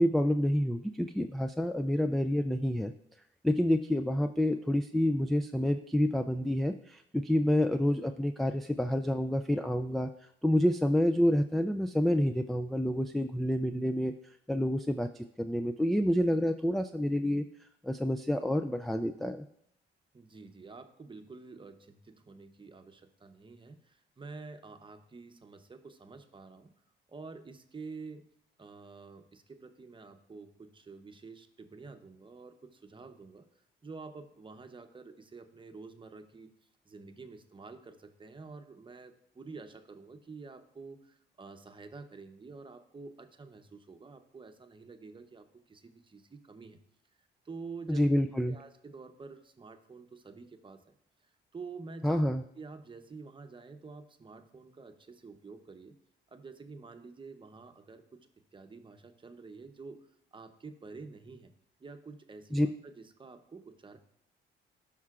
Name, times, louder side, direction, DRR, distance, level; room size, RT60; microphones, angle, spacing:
voice 1, 0.0-2.9 3.4-10.1 10.4-14.1 14.5-17.4 17.8-19.4 47.9-48.6 52.0-52.4 62.5-62.7, left 1 dB, ahead, 7 dB, 0.3 m, -28 dB
voice 2, 20.1-26.7 27.1-28.3 28.6-36.6 36.8-46.8 47.4-48.0 48.5-51.0 51.2-52.2 52.5-55.9 56.3-61.5 61.8-64.0, right 4 dB, 25° right, 7 dB, 0.8 m, -49 dB
14.0 x 5.6 x 2.4 m, 0.72 s
cardioid pair, 90°, 20 cm